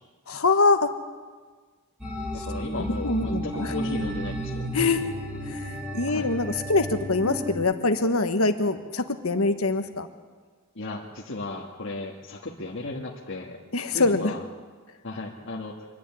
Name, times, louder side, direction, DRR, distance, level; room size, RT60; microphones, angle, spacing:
voice 1, 0.3-0.9 3.0-3.7 4.7-5.1 5.5-10.1 13.7-14.3, left 3 dB, 75° left, 8 dB, 1.5 m, -24 dB
sound 1, 2.0-7.6, equal, 5° right, 3.7 m, -32 dB
voice 2, 2.3-4.7 6.1-6.3 10.8-13.6 13.9-14.4 15.0-15.9, left 2 dB, 60° left, -3 dB, 1.7 m, -35 dB
25.5 x 10.5 x 9.9 m, 1.5 s
head